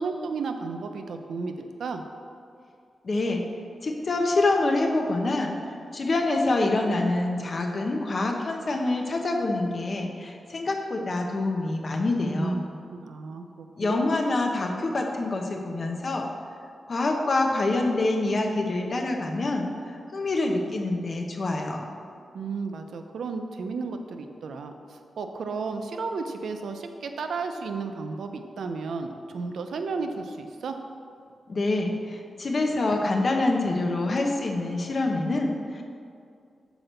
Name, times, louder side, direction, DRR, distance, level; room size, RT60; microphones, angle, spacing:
voice 1, 0.0-2.0 12.3-14.1 22.3-30.7, right 4 dB, 90° right, 6 dB, 0.6 m, -33 dB
voice 2, 3.0-3.4 3.8-5.5 5.9-12.6 13.8-16.3 16.9-21.9 31.5-35.8, left 2 dB, 45° left, 2 dB, 0.9 m, -26 dB
6.1 x 4.8 x 6.6 m, 2.4 s
wide cardioid pair, 130°, 0 cm